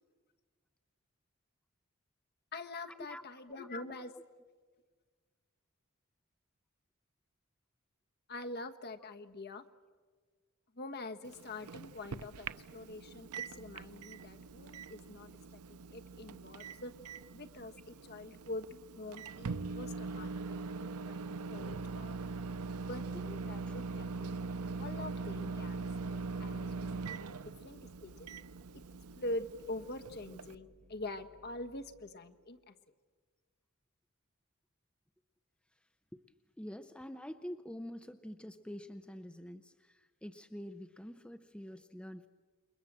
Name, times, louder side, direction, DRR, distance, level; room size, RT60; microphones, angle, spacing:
voice 1, 2.5-4.1 8.3-9.6 10.7-16.9 17.3-24.3 24.7-27.4 27.6-28.3 28.7-28.8 29.1-32.7, left 2 dB, 45° left, 7 dB, 1.3 m, -45 dB
voice 2, 3.6-3.9 23.7-23.8 36.1-36.2 36.6-42.3, equal, 5° left, 9 dB, 0.7 m, -46 dB
Microwave oven, 11.2-30.6, right 4 dB, 85° right, 0.7 m, -42 dB
sound 1, 25.7-32.3, equal, 50° right, 1.8 m, -63 dB
28.5 x 22.5 x 7.5 m, 1.5 s
head